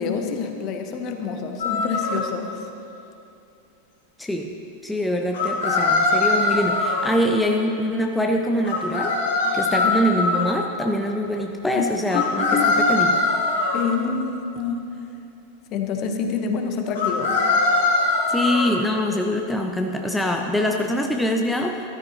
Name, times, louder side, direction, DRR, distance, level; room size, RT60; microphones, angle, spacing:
voice 1, 0.0-2.5 11.7-11.9 12.1-12.8 13.7-14.8 15.7-17.4, left 5 dB, 35° left, 5 dB, 1.0 m, -27 dB
sound 1, 1.6-2.2 5.3-7.1 8.6-10.4 12.1-13.8 16.9-18.7, left 3 dB, 60° left, 2.0 m, -21 dB
voice 2, 4.2-4.6 4.8-9.2 9.5-13.2 18.3-21.8, left 1 dB, 5° left, 2 dB, 0.6 m, -24 dB
13.5 x 13.0 x 2.9 m, 2.7 s
figure-of-eight pair, 90°, 0 cm